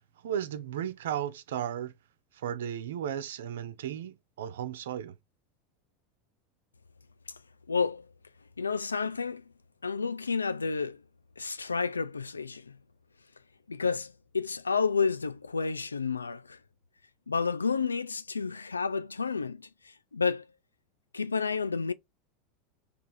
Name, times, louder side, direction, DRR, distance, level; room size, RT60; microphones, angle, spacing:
voice 1, 0.2-1.9 2.3-5.2, right 10 dB, 70° right, 0.4 m, -35 dB
voice 2, 7.7-8.1 8.6-9.4 9.8-11.0 11.4-12.8 13.7-16.6 17.3-19.7 20.1-20.5 21.1-21.9, left 5 dB, 90° left, 0.3 m, -30 dB
3.3 x 2.4 x 4.0 m
hypercardioid pair, 85°, 0 cm